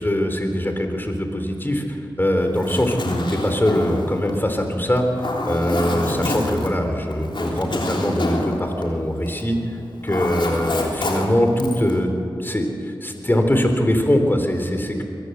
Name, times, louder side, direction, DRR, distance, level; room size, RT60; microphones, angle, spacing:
voice 1, 0.0-9.6 10.0-12.1 12.4-15.0, left 1 dB, 25° left, 5 dB, 3.7 m, -22 dB
Zipper (clothing), 2.4-9.5 9.8-12.0, left 1 dB, 65° left, 3.4 m, -27 dB
23.0 x 14.5 x 8.1 m, 2.9 s
cardioid pair, 40°, 9 cm